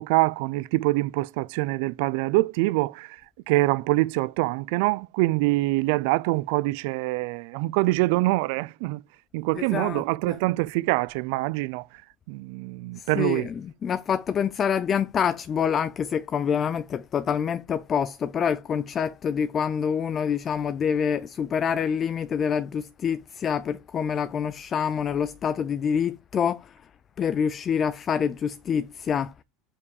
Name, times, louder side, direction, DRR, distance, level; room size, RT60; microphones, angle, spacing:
voice 1, 0.0-3.2 3.5-9.0 9.3-11.9 12.3-13.5, right 20 dB, 70° right, 0.4 m, -25 dB
voice 2, 9.5-10.4 13.0-26.8 27.2-29.3, left 7 dB, 25° left, 0.4 m, -26 dB
7.3 x 5.1 x 6.4 m
cardioid pair, 150°, 0 cm